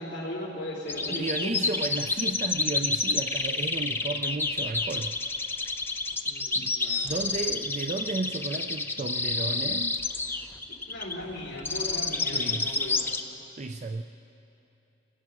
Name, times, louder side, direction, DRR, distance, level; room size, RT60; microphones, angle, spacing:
voice 1, 0.0-1.6 6.2-7.1 10.8-13.1, left 1 dB, 60° left, -9 dB, 4.3 m, -37 dB
sound 1, 0.9-13.2, left 3 dB, 10° left, 0.7 m, -29 dB
voice 2, 1.1-5.2 6.6-6.7 7.0-10.0 12.3-13.0 13.6-14.0, right 3 dB, 40° right, 7 dB, 0.5 m, -33 dB
28.0 x 15.5 x 6.0 m, 2.8 s
head